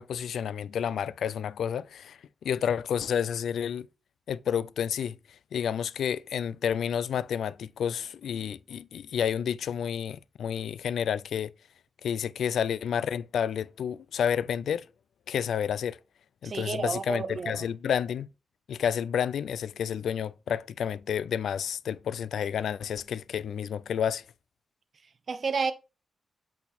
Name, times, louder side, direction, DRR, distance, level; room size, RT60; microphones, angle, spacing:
voice 1, 0.0-3.9 4.3-5.2 5.5-11.5 12.0-14.9 15.3-16.0 16.4-18.3 18.7-24.2, left 8 dB, 90° left, 0.3 m, -30 dB
voice 2, 16.4-17.7 25.3-25.7, right 5 dB, 45° right, 0.8 m, -31 dB
8.2 x 4.2 x 4.2 m
wide cardioid pair, 165°, 0 cm